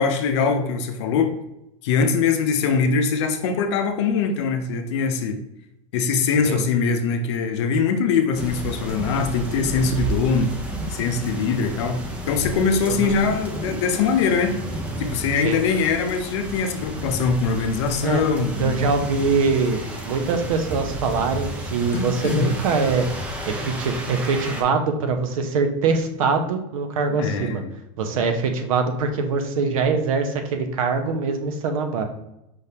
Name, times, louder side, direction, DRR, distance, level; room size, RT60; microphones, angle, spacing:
voice 1, 0.0-1.3 1.8-5.4 5.9-10.6 10.9-14.6 15.0-18.8 21.9-22.5 27.1-27.7, left 5 dB, 55° left, 6 dB, 0.6 m, -22 dB
sound 1, 8.3-24.6, right 1 dB, 5° right, 0.4 m, -32 dB
voice 2, 18.6-23.1 23.5-27.6 28.0-32.1, right 4 dB, 80° right, 6 dB, 0.9 m, -23 dB
5.4 x 3.5 x 2.8 m, 0.86 s
supercardioid pair, 180°, 17 cm